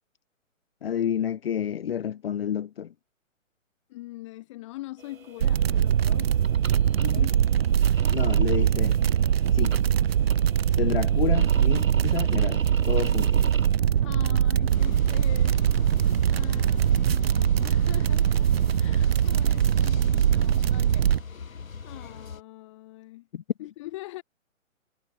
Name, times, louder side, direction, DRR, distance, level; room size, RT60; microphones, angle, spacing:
voice 1, 0.8-2.9 7.2-7.3 8.1-9.0 9.5-9.8 10.8-13.5 23.3-23.4, left 9 dB, 45° left, 0.9 m, -30 dB
voice 2, 3.9-6.3 6.9-7.4 14.0-23.3 23.6-24.2, left 18 dB, 25° left, 1.3 m, -43 dB
sound 1, 5.0-13.8, right 5 dB, 85° right, 2.8 m, -42 dB
sound 2, 5.4-21.2, right 9 dB, 50° right, 0.6 m, -22 dB
sound 3, 14.7-22.4, left 5 dB, 80° left, 2.7 m, -41 dB
hypercardioid pair, 150°, 40 cm